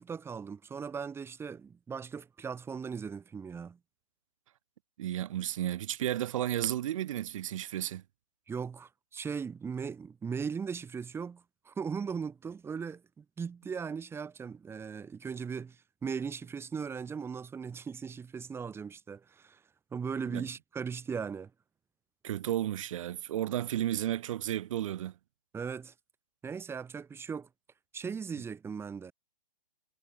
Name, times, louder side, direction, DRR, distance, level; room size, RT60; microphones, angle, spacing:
voice 1, 0.0-3.8 8.5-19.6 19.9-21.5 25.5-25.9 26.4-27.5 27.9-29.1, right 6 dB, 10° right, 4.1 m, -38 dB
voice 2, 5.0-8.0 20.3-20.5 22.2-25.1, right 12 dB, 55° right, 1.8 m, -33 dB
hypercardioid pair, 130°, 20 cm